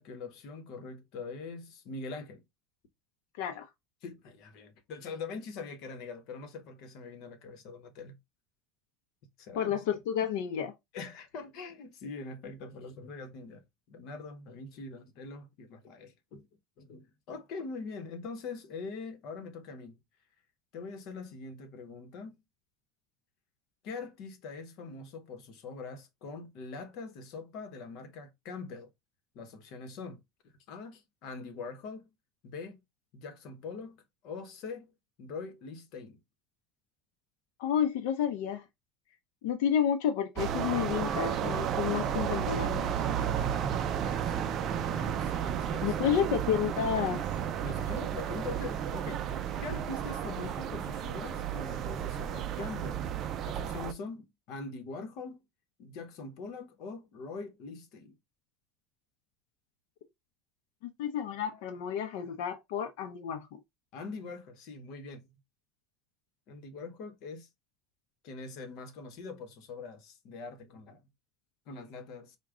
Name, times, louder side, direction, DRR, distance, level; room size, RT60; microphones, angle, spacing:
voice 1, 0.0-2.4 4.0-8.2 9.4-10.0 10.9-13.6 13.9-16.5 16.8-20.0 20.7-22.4 23.8-28.9 29.3-30.2 30.7-32.1 32.4-32.8 33.1-34.9 35.2-36.2 42.1-42.2 43.8-46.1 47.6-49.2 49.6-53.0 53.4-55.4 55.8-58.1 63.9-65.3 66.5-67.5 68.2-71.0 71.7-72.4, left 4 dB, 55° left, 0.9 m, -43 dB
voice 2, 3.4-3.7 9.6-10.7 37.6-38.6 39.4-42.9 45.8-47.2 61.0-63.6, left 8 dB, 80° left, 0.6 m, -30 dB
sound 1, 40.4-53.9, right 9 dB, 35° right, 0.4 m, -33 dB
4.8 x 2.2 x 3.6 m
cardioid pair, 160°, 0 cm